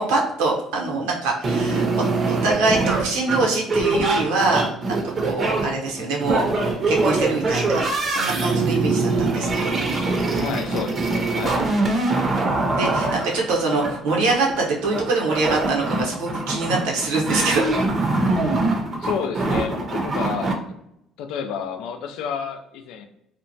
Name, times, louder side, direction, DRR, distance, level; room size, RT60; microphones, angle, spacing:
voice 1, 0.0-5.0 5.2-6.4 6.9-9.8 12.8-17.8, right 3 dB, 90° right, -1 dB, 0.8 m, -24 dB
sound 1, 1.4-20.5, right 3 dB, 40° right, 0.6 m, -23 dB
voice 2, 10.3-11.6 19.0-20.6 21.2-23.1, left 7 dB, 80° left, 5 dB, 0.4 m, -30 dB
2.9 x 2.1 x 2.6 m, 0.81 s
supercardioid pair, 80°, 0 cm